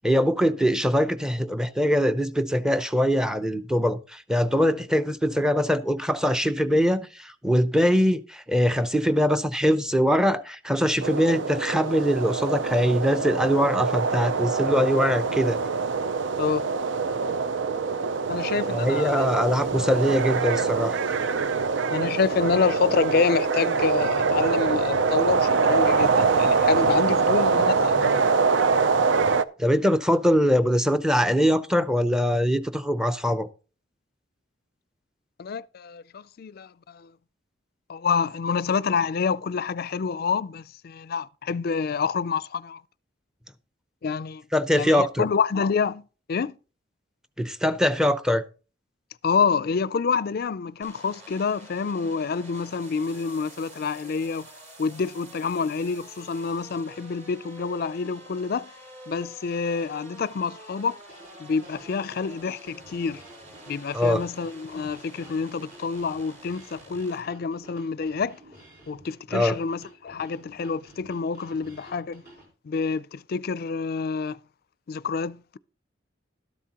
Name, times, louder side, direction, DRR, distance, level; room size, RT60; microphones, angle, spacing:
voice 1, 0.0-15.6 18.7-21.0 29.6-33.5 44.5-45.3 47.4-48.4 63.9-64.2 69.3-69.6, equal, 5° right, 0.6 m, -22 dB
sound 1, 11.0-29.4, right 4 dB, 75° right, 0.5 m, -24 dB
voice 2, 16.4-16.7 18.3-19.2 21.9-28.3 35.4-37.1 37.9-42.8 44.0-44.4 44.7-46.6 49.2-54.5 54.8-58.7 59.1-61.0 61.4-63.2 63.7-68.4 68.9-72.2 72.6-74.4 74.9-75.6, left 5 dB, 55° left, 0.4 m, -27 dB
sound 2, 50.8-67.2, right 1 dB, 40° right, 4.4 m, -48 dB
sound 3, 61.0-72.5, right 1 dB, 55° right, 4.5 m, -51 dB
13.0 x 11.0 x 2.9 m
head